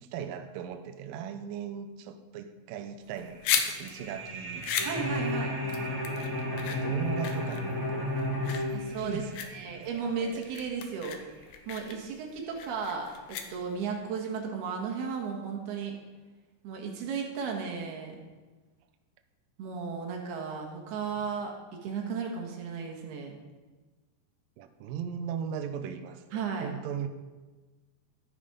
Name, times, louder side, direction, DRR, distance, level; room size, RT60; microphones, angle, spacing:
voice 1, 0.0-4.7 6.5-8.1 8.5-10.4 21.2-21.3 24.6-27.1, right 7 dB, 85° right, 7 dB, 2.0 m, -38 dB
sound 1, 3.0-14.0, left 8 dB, 75° left, 2.9 m, -36 dB
sound 2, 3.2-12.5, right 3 dB, 45° right, 3.0 m, -45 dB
Bowed string instrument, 4.8-9.6, left 1 dB, 25° left, 0.4 m, -32 dB
voice 2, 4.8-5.6 8.7-9.2 9.5-11.2 11.7-16.0 16.6-18.2 19.6-21.5 21.8-23.3 26.3-26.7, right 6 dB, 70° right, 1 dB, 3.5 m, -34 dB
14.0 x 8.8 x 5.1 m, 1.3 s
omnidirectional pair, 5.0 m